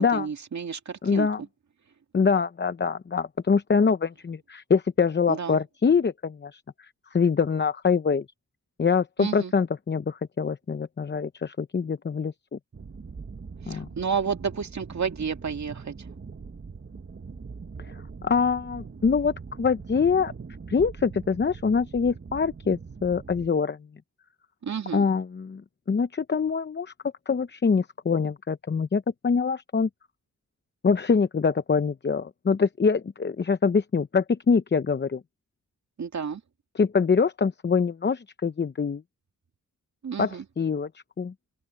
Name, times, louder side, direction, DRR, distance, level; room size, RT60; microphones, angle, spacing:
voice 1, 0.0-1.3 5.3-5.6 9.2-9.5 13.7-15.9 24.6-25.1 36.0-36.4 40.0-40.4, right 6 dB, 60° right, 2.2 m, -31 dB
voice 2, 1.0-1.4 2.1-8.3 8.8-12.6 13.7-13.9 17.8-20.3 20.7-23.8 24.9-25.6 25.9-26.9 27.3-29.9 30.8-35.2 36.7-39.0 40.2-40.9 41.2-41.3, left 5 dB, 35° left, 0.7 m, -24 dB
sound 1, 12.7-23.5, right 5 dB, 40° right, 1.3 m, -42 dB
open air
cardioid pair, 70°, 32 cm